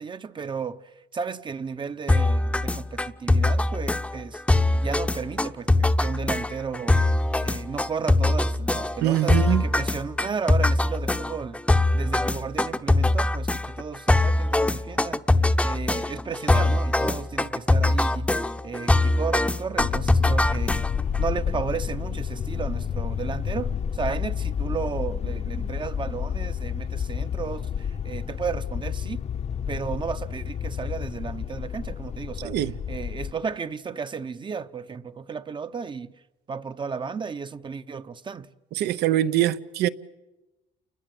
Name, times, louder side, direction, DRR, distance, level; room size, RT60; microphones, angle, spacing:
voice 1, 0.0-4.4 4.8-7.0 7.4-11.6 11.9-15.3 15.6-18.4 18.6-20.9 21.2-29.2 29.7-32.6 32.9-36.1 36.5-38.5, right 6 dB, 30° right, 0.8 m, -33 dB
sound 1, 2.1-21.2, left 2 dB, 5° left, 0.8 m, -23 dB
voice 2, 9.0-9.6 32.4-32.7 38.7-39.9, right 13 dB, 80° right, 0.8 m, -23 dB
sound 2, 19.8-33.3, left 7 dB, 40° left, 0.8 m, -30 dB
29.5 x 21.0 x 7.7 m
cardioid pair, 110°, 17 cm